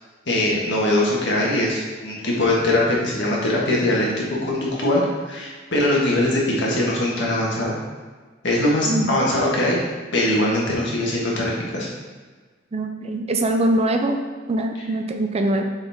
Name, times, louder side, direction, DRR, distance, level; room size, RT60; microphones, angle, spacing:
voice 1, 0.3-7.8 8.4-9.8 10.1-11.9, left 1 dB, 65° left, -4 dB, 1.6 m, -21 dB
voice 2, 8.8-9.2 12.7-14.2 14.5-15.6, right 1 dB, 35° right, 5 dB, 0.5 m, -22 dB
6.8 x 4.1 x 3.6 m, 1.4 s
head